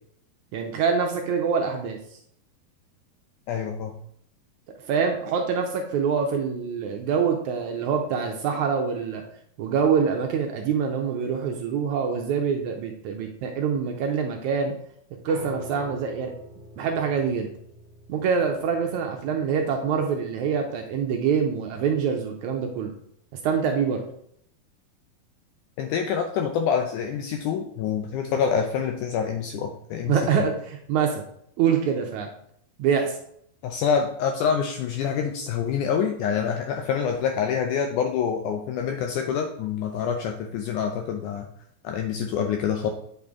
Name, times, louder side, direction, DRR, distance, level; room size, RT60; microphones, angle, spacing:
voice 1, 0.5-2.0 4.9-9.2 9.6-14.7 15.2-16.3 16.8-17.5 18.1-22.9 23.4-24.0 30.1-31.2 31.6-32.3 32.8-33.2, right 6 dB, 80° right, 3 dB, 1.8 m, -25 dB
voice 2, 3.5-3.9 25.8-30.5 33.6-41.5 41.8-42.9, left 7 dB, 80° left, 4 dB, 1.9 m, -26 dB
Piano, 15.3-21.4, left 1 dB, 25° right, 1.5 m, -46 dB
8.6 x 5.3 x 3.6 m, 0.70 s
omnidirectional pair, 4.1 m